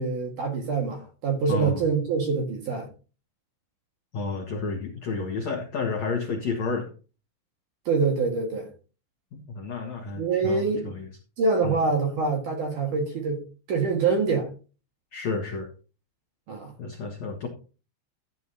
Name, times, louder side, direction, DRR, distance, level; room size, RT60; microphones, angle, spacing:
voice 1, 0.0-2.9 7.9-8.7 10.2-10.9 11.4-14.5 16.5-16.7, right 4 dB, 55° right, 2.4 m, -25 dB
voice 2, 1.5-1.8 4.1-6.9 9.3-11.1 11.6-11.7 15.1-15.7 16.8-17.5, left 4 dB, 85° left, 1.5 m, -31 dB
13.5 x 9.3 x 2.8 m
omnidirectional pair, 5.7 m